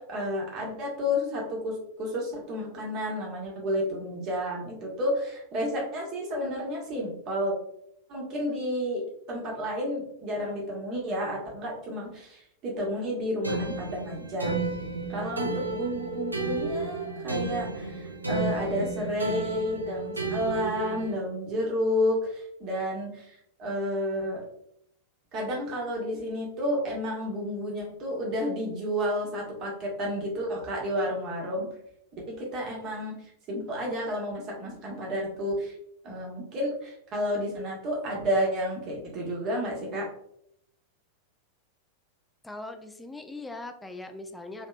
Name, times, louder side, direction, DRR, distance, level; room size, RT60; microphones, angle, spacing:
voice 1, 0.1-7.5 8.1-9.0 9.3-14.5 15.1-23.3 23.6-24.4 25.3-31.7 32.3-33.1 33.5-35.7 36.0-40.1, equal, 35° right, -2 dB, 1.2 m, -31 dB
sound 1, 13.4-21.1, right 3 dB, 80° right, 0.4 m, -32 dB
voice 2, 42.4-44.7, left 2 dB, 10° left, 7 dB, 0.3 m, -40 dB
3.1 x 2.9 x 2.4 m, 0.73 s
figure-of-eight pair, 90°, 0 cm